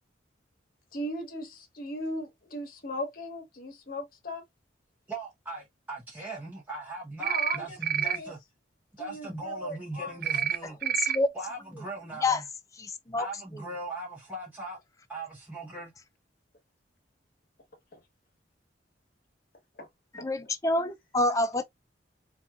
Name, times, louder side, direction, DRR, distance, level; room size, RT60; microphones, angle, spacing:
voice 1, 0.9-4.4 7.2-8.3 9.0-10.4 17.9-18.0 19.7-19.9 20.2-20.3, left 1 dB, 50° left, 1.1 m, -38 dB
voice 2, 5.1-8.4 9.0-10.8 11.3-12.4 13.2-14.8 15.1-15.9, right 2 dB, 10° right, 0.9 m, -39 dB
sound 1, 7.2-7.6 7.8-8.2 10.2-10.6 10.8-11.2, right 9 dB, 50° right, 0.4 m, -28 dB
voice 3, 10.6-11.3 12.2-12.4 12.8-13.3 20.1-21.6, left 2 dB, 15° left, 0.5 m, -28 dB
4.2 x 2.4 x 2.3 m
head